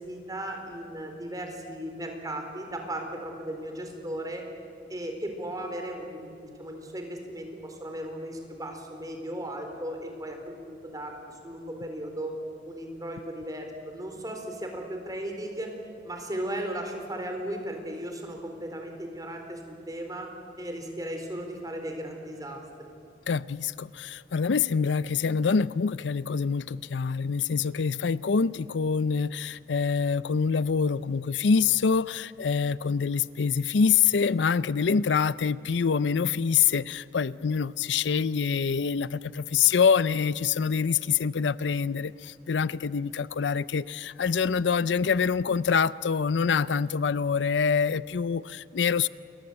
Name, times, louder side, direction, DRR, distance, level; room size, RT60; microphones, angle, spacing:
voice 1, 0.0-4.5 4.9-12.3 12.7-15.7 16.0-20.3 20.6-22.6, right 1 dB, 20° right, 4 dB, 4.1 m, -36 dB
voice 2, 23.3-49.1, left 6 dB, 80° left, 18 dB, 0.5 m, -25 dB
28.5 x 21.5 x 8.1 m, 2.5 s
head